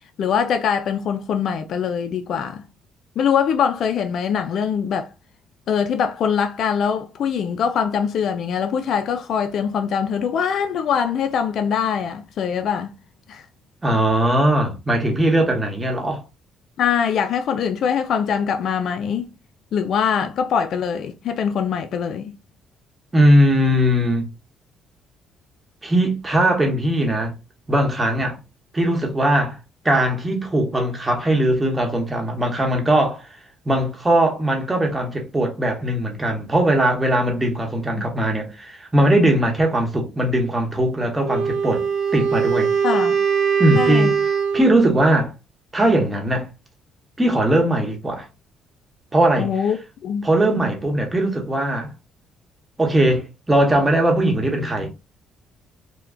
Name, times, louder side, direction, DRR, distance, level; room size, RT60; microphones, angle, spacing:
voice 1, 0.2-2.6 3.2-5.1 5.7-12.9 13.3-13.5 16.8-19.3 19.7-22.3 42.8-43.2 43.7-44.1 49.4-49.8 50.0-50.3, left 7 dB, 60° left, 0.3 m, -23 dB
voice 2, 13.8-16.2 23.1-24.3 25.8-27.3 27.7-28.4 28.7-29.6 29.8-33.3 33.6-41.9 42.1-42.7 43.6-44.2 44.5-45.3 45.7-46.5 47.2-48.3 49.1-49.5 50.2-51.9 52.8-54.9, right 1 dB, 15° right, 1.0 m, -19 dB
Wind instrument woodwind instrument, 41.2-44.7, right 6 dB, 75° right, 1.0 m, -21 dB
3.4 x 2.2 x 2.4 m
cardioid pair, 90°, 0 cm